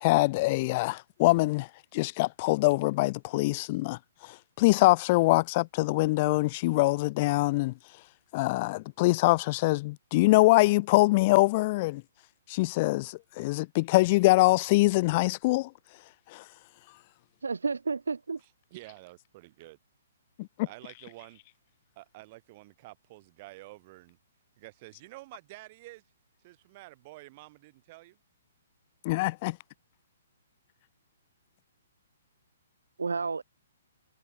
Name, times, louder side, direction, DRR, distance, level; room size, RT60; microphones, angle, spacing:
voice 1, 0.0-7.7 8.3-12.0 12.5-15.7 16.3-16.4 20.4-20.7 29.0-29.6, left 21 dB, 40° left, 0.5 m, -24 dB
voice 2, 17.4-18.4 33.0-33.4, right 4 dB, 80° right, 0.4 m, -31 dB
voice 3, 18.4-19.8 20.6-21.4 22.0-24.2 24.6-26.0 26.4-28.2, right 20 dB, 40° right, 2.7 m, -49 dB
hypercardioid pair, 130°, 0 cm